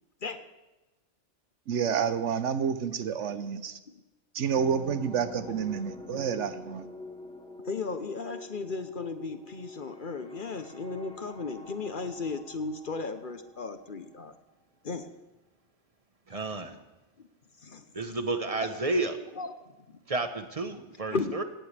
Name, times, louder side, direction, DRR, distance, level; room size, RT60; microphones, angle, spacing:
voice 1, 1.7-3.8 4.3-6.9, right 7 dB, 75° right, 12 dB, 1.1 m, -29 dB
sound 1, 4.5-14.4, left 1 dB, 5° left, 1.3 m, -47 dB
voice 2, 7.6-14.3 14.8-15.1 16.3-16.4 17.2-17.3 17.6-17.8 19.4-19.5 19.9-20.0 21.0-21.4, left 4 dB, 45° left, 9 dB, 1.0 m, -35 dB
voice 3, 16.3-16.8 17.9-19.2 20.1-21.4, right 2 dB, 30° right, 8 dB, 1.0 m, -31 dB
17.0 x 17.0 x 3.4 m, 1.1 s
omnidirectional pair, 1.3 m